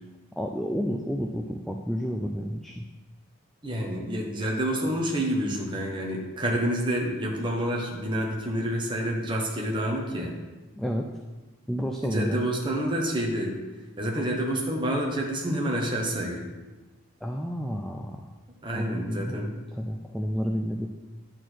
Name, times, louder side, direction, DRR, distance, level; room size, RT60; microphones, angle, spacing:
voice 1, 0.4-2.9 10.7-11.1 11.7-12.4 17.2-18.3 18.7-20.9, equal, ahead, 2 dB, 0.3 m, -30 dB
voice 2, 3.6-10.4 12.0-13.6 14.0-16.5 18.6-19.5, right 1 dB, 20° right, -1 dB, 1.2 m, -28 dB
11.0 x 4.4 x 4.5 m, 1.2 s
head